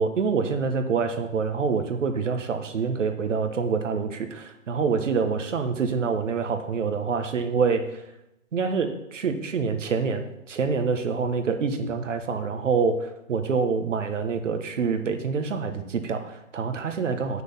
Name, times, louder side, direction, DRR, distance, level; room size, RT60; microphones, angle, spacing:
voice 1, 0.0-7.8 8.5-17.4, right 5 dB, 65° right, 7 dB, 1.5 m, -26 dB
9.8 x 6.4 x 5.5 m, 0.87 s
figure-of-eight pair, 130°, 40 cm